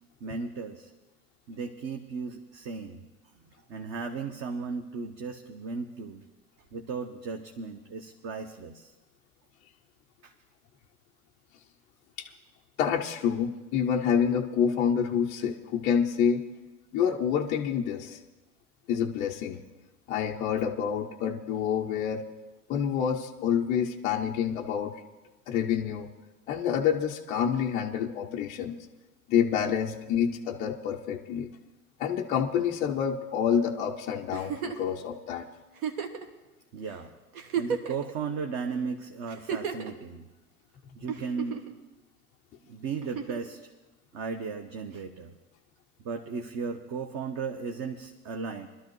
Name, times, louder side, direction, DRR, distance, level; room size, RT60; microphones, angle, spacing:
voice 1, 0.2-0.9 1.5-3.0 3.7-6.2 6.7-8.9 10.2-10.3 36.7-37.2 37.6-40.3 40.9-41.9 42.7-43.7 44.1-45.3 46.0-48.7, right 5 dB, 35° right, 6 dB, 0.8 m, -36 dB
voice 2, 12.8-16.5 16.9-18.2 18.9-19.6 20.1-22.2 22.7-24.9 25.5-26.1 26.5-28.8 29.3-31.5 32.0-35.5, left 8 dB, 20° left, -1 dB, 0.3 m, -27 dB
Giggle, 34.3-34.9 35.8-36.3 36.9-37.0 37.3-38.1 39.3-39.9 41.1-41.7 43.0-43.5 45.0-45.1, right 7 dB, 65° right, 1.3 m, -33 dB
21.5 x 12.5 x 3.1 m, 1.1 s
hypercardioid pair, 95°, 45 cm